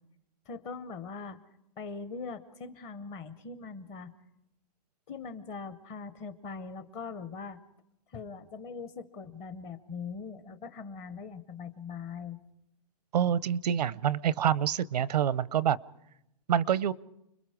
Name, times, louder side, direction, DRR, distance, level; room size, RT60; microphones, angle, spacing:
voice 1, 0.5-1.4 1.8-4.1 5.1-7.6 8.1-12.4, left 5 dB, 20° left, 12 dB, 0.8 m, -41 dB
voice 2, 13.1-15.8 16.5-16.9, right 9 dB, 85° right, 19 dB, 0.7 m, -26 dB
30.0 x 21.5 x 4.9 m, 0.83 s
hypercardioid pair, 170°, 20 cm